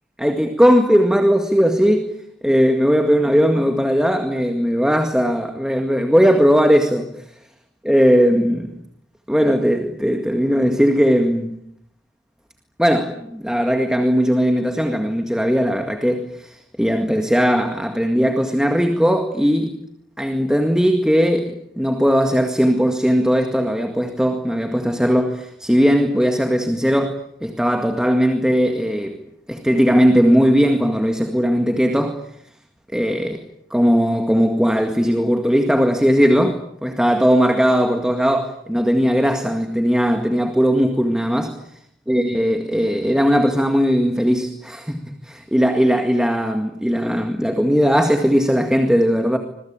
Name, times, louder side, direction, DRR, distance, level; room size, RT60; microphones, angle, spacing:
voice 1, 0.2-2.1 2.4-7.1 7.8-8.7 9.3-11.6 12.8-19.8 20.2-29.2 29.5-32.2 32.9-33.4 33.7-41.6 42.1-49.4, equal, 5° right, 1.9 m, -18 dB
26.5 x 22.5 x 8.8 m
head